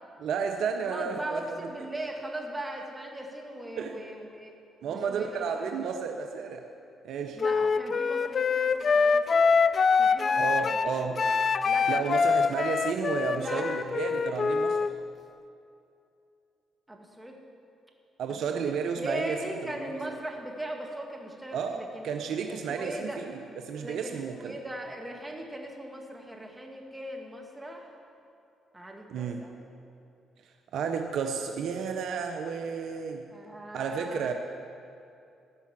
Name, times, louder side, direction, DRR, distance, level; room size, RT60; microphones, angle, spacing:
voice 1, 0.2-1.4 3.8-4.0 4.8-6.7 7.0-7.4 10.4-11.2 11.9-14.9 18.2-19.9 21.5-24.6 29.1-29.4 30.7-33.3 33.7-34.3, right 6 dB, 70° right, 5 dB, 0.7 m, -32 dB
voice 2, 0.8-4.5 4.9-5.9 7.3-9.5 10.0-11.2 11.6-12.0 13.3-13.7 16.9-17.4 18.3-22.1 22.5-23.2 23.8-27.9 28.7-29.6 33.3-34.3, right 1 dB, 15° right, 0 dB, 2.2 m, -39 dB
Wind instrument woodwind instrument, 7.4-14.9, left 5 dB, 50° left, 0.3 m, -25 dB
15.5 x 5.6 x 7.3 m, 2.6 s
hypercardioid pair, 50°, 0 cm